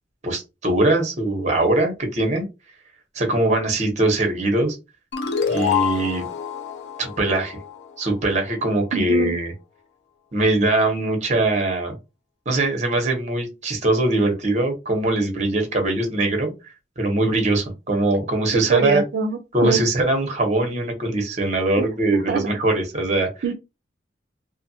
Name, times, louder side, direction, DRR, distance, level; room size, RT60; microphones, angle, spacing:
voice 1, 0.2-2.4 3.1-4.8 5.5-6.3 7.0-7.6 8.0-9.5 10.3-11.9 12.5-16.5 17.0-19.0 19.5-23.3, right 2 dB, 40° right, 4 dB, 0.9 m, -21 dB
sound 1, 5.1-8.3, left 7 dB, 65° left, 0.5 m, -27 dB
voice 2, 8.9-9.4 18.5-19.8 21.8-22.4 23.4-23.5, right 6 dB, 70° right, 4 dB, 0.4 m, -24 dB
2.6 x 2.4 x 2.7 m, 0.26 s
head